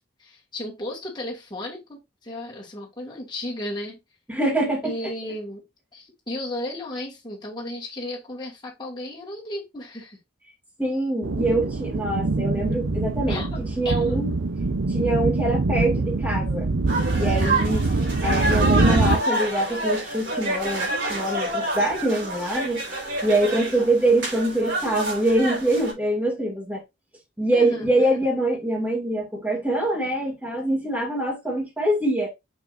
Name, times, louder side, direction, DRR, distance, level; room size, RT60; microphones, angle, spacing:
voice 1, 0.2-4.0 4.8-5.6 5.9-10.2 13.3-14.3 27.5-28.0, left 1 dB, 20° left, 2.4 m, -34 dB
voice 2, 4.3-4.9 10.8-14.3 14.9-16.7 17.2-17.9 18.2-22.8 23.2-26.8 27.4-32.3, right 1 dB, 10° right, 2.4 m, -24 dB
sound 1, 11.2-19.2, right 3 dB, 80° right, 0.7 m, -24 dB
sound 2, 16.9-25.9, right 1 dB, 60° right, 4.5 m, -28 dB
6.6 x 5.7 x 2.6 m
head